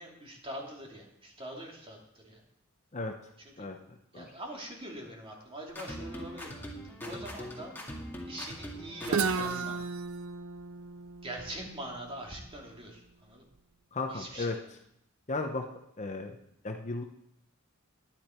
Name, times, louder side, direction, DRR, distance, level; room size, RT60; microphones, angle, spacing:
voice 1, 0.0-2.4 3.4-3.7 4.1-6.6 7.0-7.7 8.3-9.8 11.2-13.4 14.1-14.7, right 1 dB, 25° right, 0 dB, 2.6 m, -43 dB
sound 1, 5.7-9.8, equal, 10° left, 2.1 m, -41 dB
Guitar, 9.1-12.8, right 5 dB, 70° right, 0.6 m, -34 dB
voice 2, 13.9-14.6 15.3-15.7 16.0-16.4 16.6-17.0, left 3 dB, 35° left, 4 dB, 0.8 m, -34 dB
12.0 x 10.0 x 4.5 m, 0.76 s
head